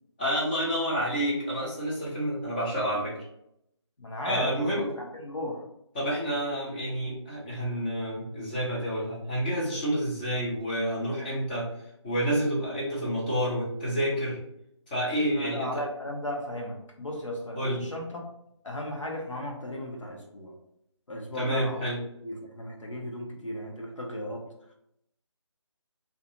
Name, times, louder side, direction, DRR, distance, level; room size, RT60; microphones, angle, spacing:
voice 1, 0.2-3.2 4.2-4.8 5.9-11.7 12.0-14.4 14.9-15.8 17.6-17.8 21.3-22.0, equal, 20° left, -6 dB, 0.7 m, -29 dB
voice 2, 4.0-5.6 15.2-18.2 18.6-20.5 21.1-21.9 22.2-24.4, left 1 dB, 80° left, 0 dB, 0.9 m, -35 dB
2.4 x 2.4 x 2.9 m, 0.78 s
figure-of-eight pair, 160°, 16 cm